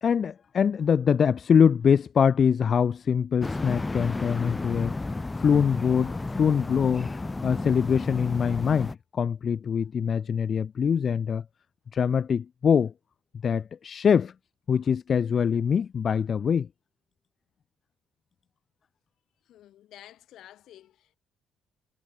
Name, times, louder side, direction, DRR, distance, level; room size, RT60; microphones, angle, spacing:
voice 1, 0.0-4.9 5.4-7.1 7.4-11.4 11.9-12.9 13.4-14.3 14.7-16.7, left 7 dB, 50° left, 0.4 m, -23 dB
sound 1, 3.4-8.9, left 2 dB, 20° left, 1.5 m, -33 dB
voice 2, 19.5-21.2, left 12 dB, 75° left, 4.1 m, -51 dB
supercardioid pair, 70°, 0 cm